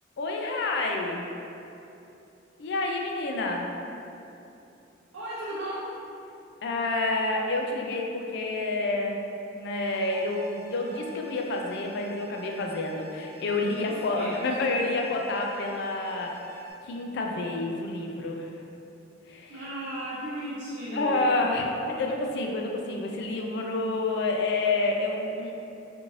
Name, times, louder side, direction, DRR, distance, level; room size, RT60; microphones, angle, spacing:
voice 1, 0.2-1.2 2.6-3.7 6.6-9.2 9.5-16.3 16.9-18.5 19.3-19.5 20.9-25.5, left 2 dB, 60° left, 1 dB, 0.3 m, -28 dB
voice 2, 5.1-5.8 13.7-14.4 19.5-21.5, right 1 dB, 80° right, -10 dB, 0.5 m, -36 dB
sound 1, 9.7-16.7, right 2 dB, 40° left, 1.0 m, -48 dB
2.5 x 2.5 x 3.0 m, 2.8 s
head